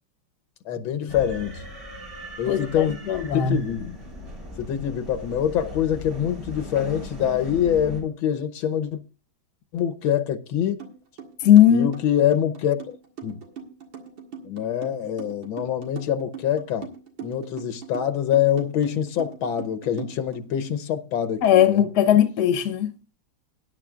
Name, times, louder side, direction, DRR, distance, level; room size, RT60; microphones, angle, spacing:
voice 1, 0.7-1.6 2.4-2.9 3.3-4.0 4.6-9.0 9.7-10.8 11.7-13.0 13.2-13.4 14.5-16.9 17.2-21.9, left 9 dB, 85° left, 1.7 m, -25 dB
sound 1, 1.1-8.0, left 1 dB, 35° right, 4.5 m, -39 dB
voice 2, 2.5-3.6 11.4-11.9 21.4-22.9, left 10 dB, 60° left, 1.5 m, -18 dB
sound 2, 10.8-10.9 11.2-20.4, right 7 dB, 75° right, 2.6 m, -39 dB
18.5 x 10.0 x 2.4 m
omnidirectional pair, 2.2 m